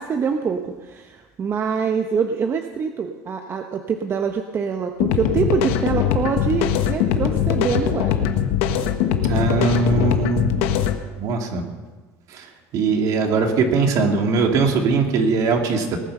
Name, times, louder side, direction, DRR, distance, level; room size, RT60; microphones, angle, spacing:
voice 1, 0.0-8.3, right 6 dB, 35° right, 5 dB, 0.9 m, -25 dB
sound 1, 5.0-11.0, left 9 dB, 85° left, 1.2 m, -21 dB
voice 2, 9.2-10.5 11.2-11.6 12.3-12.5 12.7-16.0, right 4 dB, 60° right, 3 dB, 2.5 m, -20 dB
19.0 x 9.2 x 6.7 m, 1.3 s
supercardioid pair, 110°, 7 cm